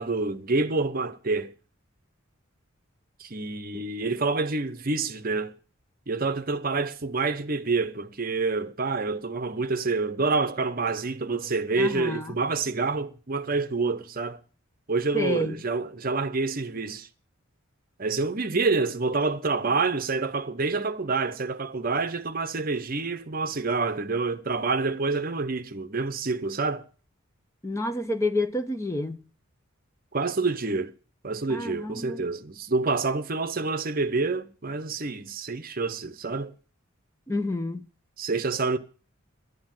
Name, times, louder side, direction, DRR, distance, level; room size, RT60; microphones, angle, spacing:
voice 1, 0.0-1.5 3.2-5.5 6.1-14.4 14.9-17.1 18.0-26.8 30.1-30.9 31.2-36.5 38.2-38.8, right 3 dB, 45° right, 0.8 m, -27 dB
voice 2, 11.8-12.3 15.1-15.6 27.6-29.2 31.5-32.2 37.3-37.9, left 1 dB, 15° left, 0.7 m, -29 dB
11.5 x 9.6 x 7.6 m
head